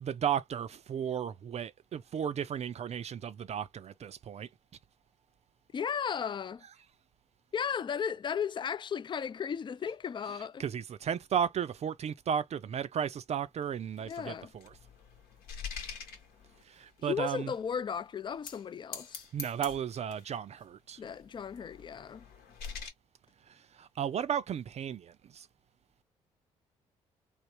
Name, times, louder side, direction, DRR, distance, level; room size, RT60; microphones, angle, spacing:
voice 1, 0.0-4.5 10.6-14.7 16.7-17.5 19.3-21.0 23.5-25.5, right 8 dB, 45° right, 0.4 m, -34 dB
voice 2, 5.7-6.6 7.5-10.7 14.0-14.5 17.1-19.2 21.0-22.3, left 7 dB, 30° left, 0.3 m, -35 dB
sound 1, 13.6-16.9 17.5-17.6 18.3-18.6 18.9-20.4 21.0-22.9, left 6 dB, 70° left, 1.0 m, -45 dB
3.4 x 2.4 x 2.9 m
hypercardioid pair, 45°, 16 cm